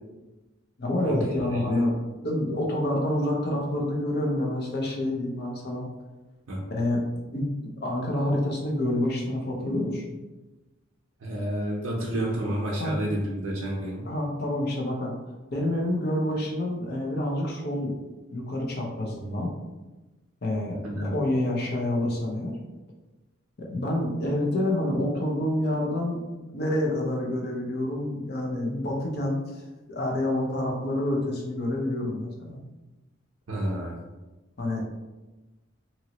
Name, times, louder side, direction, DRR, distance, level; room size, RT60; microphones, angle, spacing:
voice 1, 0.8-1.9 2.2-5.9 6.7-7.0 7.3-10.0 12.8-12.9 14.0-15.1 15.5-17.9 18.3-19.5 20.4-22.5 23.6-26.2 26.5-29.6 29.9-32.6 34.6-34.8, left 1 dB, 50° left, -1 dB, 0.7 m, -28 dB
voice 2, 11.2-14.1 20.8-21.1 33.5-34.0, right 1 dB, 85° right, -4 dB, 0.5 m, -30 dB
3.0 x 2.7 x 2.8 m, 1.1 s
head